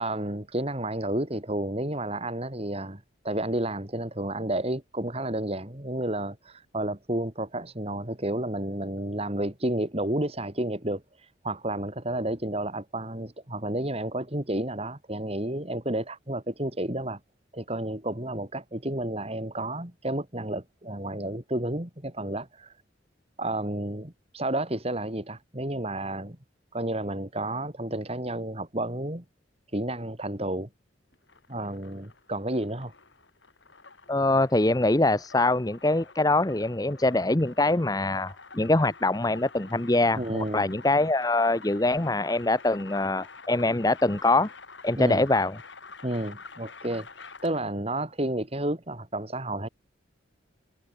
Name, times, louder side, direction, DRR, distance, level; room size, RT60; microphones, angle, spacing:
voice 1, 0.0-17.2 17.5-22.7 23.4-26.4 26.7-29.2 29.7-30.7 31.5-32.9 40.2-40.7 45.0-45.2 46.0-49.7, right 1 dB, 30° right, 3.1 m, -31 dB
sound 1, 31.1-47.8, left 4 dB, 70° left, 5.5 m, -48 dB
voice 2, 34.1-44.5 44.8-45.6, left 2 dB, 20° left, 0.9 m, -24 dB
head